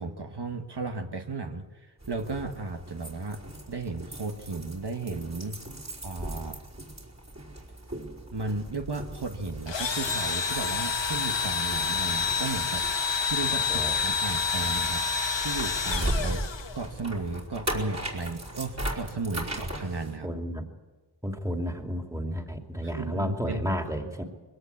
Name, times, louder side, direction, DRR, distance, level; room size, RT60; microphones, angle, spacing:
voice 1, 0.0-5.6 6.0-6.6 8.3-12.9 13.2-15.1 15.4-16.4 16.7-20.3 22.8-24.1, right 3 dB, 65° right, 4 dB, 1.4 m, -35 dB
sound 1, 2.0-20.1, right 1 dB, 40° right, 4.7 m, -38 dB
Engine / Drill, 9.7-17.0, left 5 dB, 85° left, 1.3 m, -28 dB
voice 2, 13.5-14.0 16.2-16.3 19.4-19.6 20.2-20.7 21.2-24.2, equal, 5° right, 3 dB, 2.7 m, -32 dB
22.5 x 17.5 x 8.5 m, 1.3 s
wide cardioid pair, 70°, 43 cm